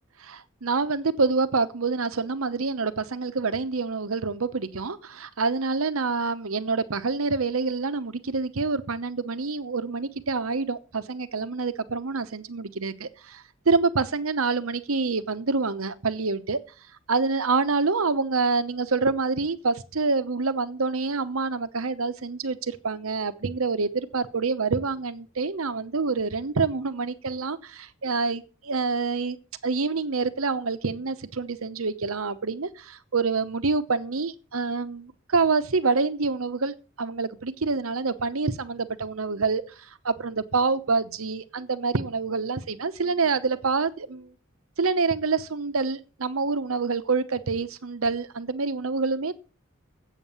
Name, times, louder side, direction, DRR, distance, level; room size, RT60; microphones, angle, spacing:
voice 1, 0.2-16.6 17.1-29.4 29.6-44.3 44.8-49.3, right 4 dB, 75° right, 0.9 m, -27 dB
8.2 x 7.4 x 8.2 m
head